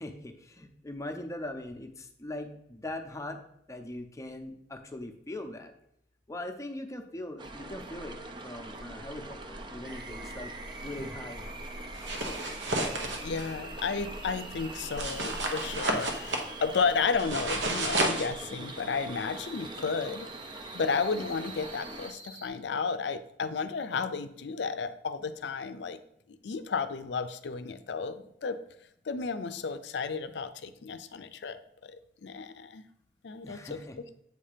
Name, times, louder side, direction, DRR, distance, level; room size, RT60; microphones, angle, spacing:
voice 1, 0.0-3.4 3.7-5.7 6.3-8.2 8.4-10.5 10.8-11.4 33.4-34.0, left 1 dB, 15° left, 4 dB, 0.6 m, -40 dB
sound 1, 7.4-22.1, right 1 dB, 25° right, 0.5 m, -43 dB
sound 2, 9.8-22.5, right 2 dB, 65° right, 1.2 m, -47 dB
sound 3, 11.9-13.5 15.0-16.5 17.2-18.3, right 2 dB, 85° right, 1.0 m, -31 dB
voice 2, 13.2-20.3 20.7-26.0 26.3-28.6 29.1-32.8 33.2-33.8, left 5 dB, 70° left, 11 dB, 0.5 m, -33 dB
7.9 x 2.8 x 5.0 m, 0.75 s
head